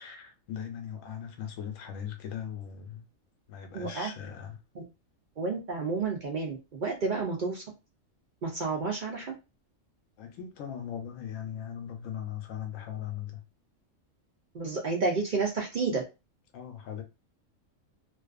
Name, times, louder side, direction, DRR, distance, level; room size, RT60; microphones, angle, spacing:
voice 1, 0.0-3.0 3.5-4.6 10.2-13.4 16.5-17.0, left 9 dB, 80° left, 1.0 m, -39 dB
voice 2, 3.7-4.1 4.8-4.9 5.4-7.6 8.4-9.3 14.5-16.0, right 4 dB, 60° right, 0.5 m, -30 dB
2.5 x 2.3 x 2.3 m
omnidirectional pair, 1.3 m